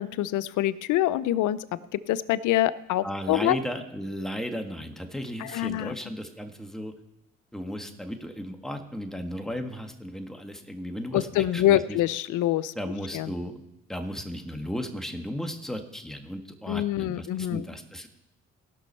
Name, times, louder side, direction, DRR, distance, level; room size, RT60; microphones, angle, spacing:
voice 1, 0.0-1.6 2.1-3.6 5.4-5.9 11.1-12.7 13.1-13.3 16.7-17.6, left 13 dB, 80° left, 16 dB, 0.6 m, -25 dB
voice 2, 3.0-6.9 7.5-12.0 12.7-13.6 13.9-18.1, equal, ahead, 5 dB, 1.7 m, -35 dB
17.5 x 6.2 x 5.6 m, 0.88 s
supercardioid pair, 60°, 30 cm